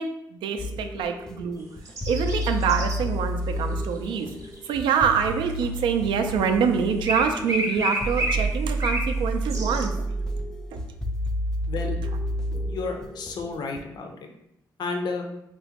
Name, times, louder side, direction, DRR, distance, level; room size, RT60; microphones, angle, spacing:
voice 1, 0.0-1.7 2.1-4.3 4.6-10.1 10.7-10.8, right 6 dB, 80° right, 6 dB, 0.4 m, -25 dB
sound 1, 0.6-13.8, right 1 dB, 10° left, 0.3 m, -30 dB
sound 2, 1.9-3.0 3.8-5.8 7.0-9.1 9.5-9.9, equal, 35° right, 0.8 m, -30 dB
voice 2, 11.7-12.0 12.7-14.3 14.8-15.3, left 4 dB, 60° left, 3 dB, 0.5 m, -31 dB
3.7 x 2.1 x 2.8 m, 0.82 s
cardioid pair, 90°, 8 cm